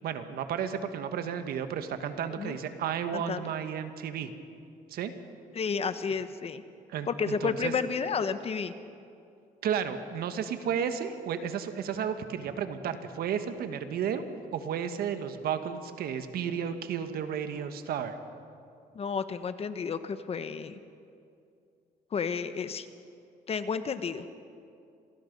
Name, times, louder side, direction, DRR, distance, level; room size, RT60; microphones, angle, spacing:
voice 1, 0.0-4.3 4.9-5.1 6.9-7.7 9.6-14.2 14.5-18.1, right 8 dB, 75° right, 9 dB, 1.5 m, -33 dB
voice 2, 3.1-3.4 5.5-6.6 7.1-8.7 18.9-20.8 22.1-22.9 23.5-24.2, left 5 dB, 40° left, 11 dB, 1.1 m, -31 dB
26.5 x 19.5 x 5.4 m, 2.5 s
cardioid pair, 115°, 16 cm